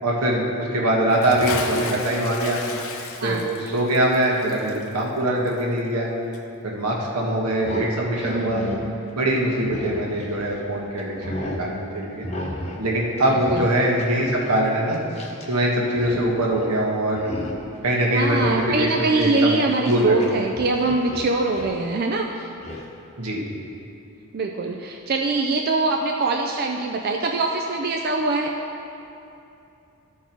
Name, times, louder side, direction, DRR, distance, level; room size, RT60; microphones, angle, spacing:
voice 1, 0.0-2.6 3.2-6.1 6.6-8.6 9.1-12.3 12.8-15.0 15.5-17.3 17.8-18.5 18.8-19.6 19.8-20.2 23.2-23.4, right 1 dB, 85° right, -2 dB, 1.5 m, -23 dB
Bathtub (filling or washing) / Splash splatter, 1.1-6.1 6.3-6.4, left 4 dB, 65° left, 0.7 m, -34 dB
sound 1, 7.6-10.6 11.0-11.7 12.2-12.8 13.1-15.6 15.8-16.2 16.5-16.8 17.1-17.8 18.1-20.3 20.5-21.8 22.6-22.8, left 1 dB, 30° left, 0.9 m, -35 dB
voice 2, 8.3-9.0 13.3-13.7 18.1-22.5 24.3-28.5, right 3 dB, 45° right, 2 dB, 0.4 m, -23 dB
13.5 x 4.6 x 4.5 m, 2.8 s
head